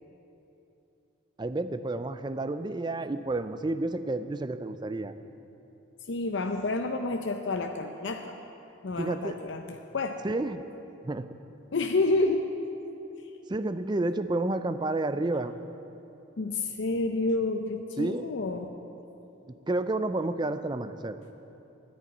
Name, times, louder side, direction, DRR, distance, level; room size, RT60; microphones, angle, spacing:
voice 1, 1.4-5.1 9.0-9.4 10.2-10.6 11.0-11.2 13.5-15.6 18.0-18.3 19.5-21.2, right 2 dB, 20° right, 11 dB, 0.4 m, -30 dB
voice 2, 6.1-8.4 8.8-10.2 11.7-12.5 16.4-18.7, left 2 dB, 65° left, 5 dB, 0.6 m, -29 dB
10.5 x 9.2 x 9.6 m, 3.0 s
head